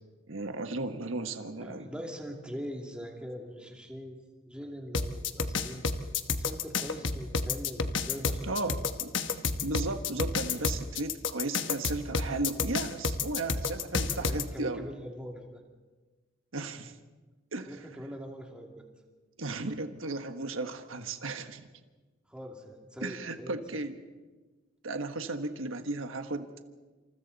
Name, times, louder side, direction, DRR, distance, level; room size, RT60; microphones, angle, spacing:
voice 1, 0.3-1.8 8.4-9.1 9.6-14.8 16.5-16.9 17.5-17.7 19.4-21.7 23.0-24.0 24.8-26.5, right 2 dB, 85° right, 7 dB, 1.4 m, -35 dB
voice 2, 1.6-4.2 4.5-5.8 6.4-8.8 14.0-15.6 17.7-18.9 22.3-23.6, equal, 5° right, 0 dB, 2.6 m, -42 dB
sound 1, 4.9-14.4, left 5 dB, 65° left, 1.2 m, -30 dB
28.0 x 27.5 x 4.1 m, 1.3 s
head